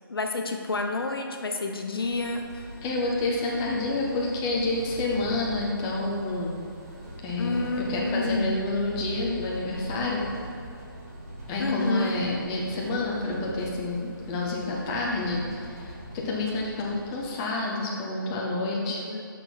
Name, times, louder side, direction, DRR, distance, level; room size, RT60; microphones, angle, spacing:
voice 1, 0.1-2.7 7.4-8.6 11.6-12.1 19.0-19.2, left 3 dB, 80° left, 4 dB, 1.1 m, -29 dB
sound 1, 2.0-17.3, equal, 40° right, 1.6 m, -41 dB
voice 2, 2.8-6.6 7.2-10.2 11.5-19.0, left 2 dB, 10° left, -3 dB, 0.6 m, -29 dB
6.9 x 6.0 x 5.3 m, 2.4 s
hypercardioid pair, 175°, 12 cm